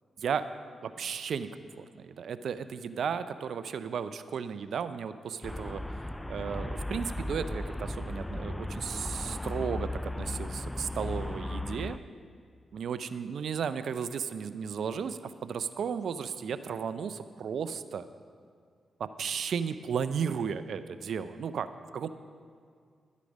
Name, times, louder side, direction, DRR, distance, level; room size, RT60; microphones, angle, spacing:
voice 1, 0.8-5.8 6.3-12.0 12.7-18.1 19.0-21.7 21.9-22.1, right 7 dB, 75° right, 12 dB, 0.4 m, -34 dB
Traffic noise roadway noise, 5.4-12.0, left 1 dB, 15° left, 0.3 m, -36 dB
12.0 x 8.3 x 5.2 m, 2.2 s
supercardioid pair, 45°, 0 cm